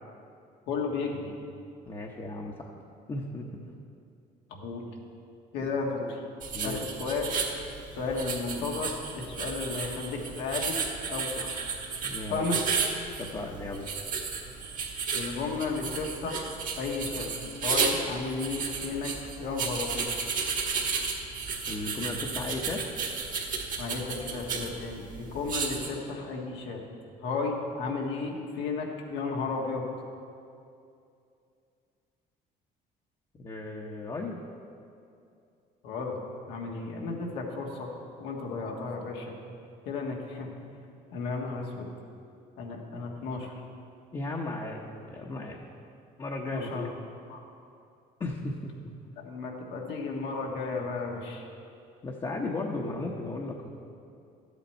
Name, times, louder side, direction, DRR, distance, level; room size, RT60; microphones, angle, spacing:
voice 1, 0.7-1.3 4.5-4.9 5.5-6.2 6.6-7.2 7.9-10.8 11.1-11.6 12.3-12.6 15.1-17.3 17.6-19.1 19.4-20.1 23.8-26.8 27.2-29.8 35.8-36.2 36.5-37.9 38.2-39.4 39.8-40.5 41.1-41.9 42.6-43.5 46.5-46.8 47.3-47.4 49.2-51.5, left 4 dB, 90° left, -1 dB, 1.6 m, -33 dB
voice 2, 1.8-2.7 3.1-3.5 5.6-5.7 6.5-6.8 12.0-12.5 13.2-13.8 21.7-22.8 33.4-34.4 44.1-45.6 46.2-46.9 48.2-48.7 52.0-53.7, left 2 dB, 25° left, -1 dB, 0.9 m, -35 dB
sound 1, 6.4-25.9, right 5 dB, 50° right, 1.4 m, -33 dB
12.0 x 8.2 x 4.4 m, 2.5 s
cardioid pair, 110°, 17 cm